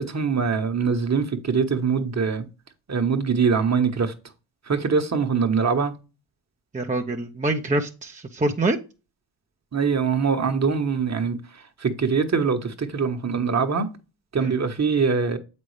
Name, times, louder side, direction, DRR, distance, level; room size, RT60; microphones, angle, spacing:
voice 1, 0.0-2.5 2.9-4.1 4.7-5.9 9.7-11.4 11.8-13.9 14.3-15.4, right 5 dB, 35° right, 1.3 m, -23 dB
voice 2, 6.7-8.8 14.4-14.5, right 2 dB, 15° right, 0.8 m, -25 dB
7.5 x 5.4 x 3.3 m
supercardioid pair, 60°, 48 cm